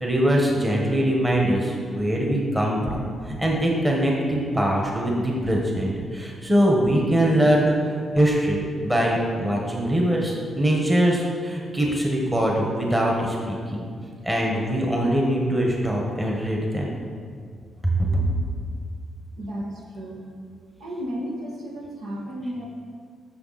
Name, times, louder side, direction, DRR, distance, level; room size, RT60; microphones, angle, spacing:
voice 1, 0.0-13.9 14.2-16.9 17.8-18.1, right 1 dB, 10° right, -2 dB, 1.6 m, -22 dB
voice 2, 19.4-20.3 20.8-22.6, equal, 90° right, -2 dB, 2.1 m, -33 dB
14.5 x 6.6 x 4.3 m, 2.1 s
wide cardioid pair, 150°, 0 cm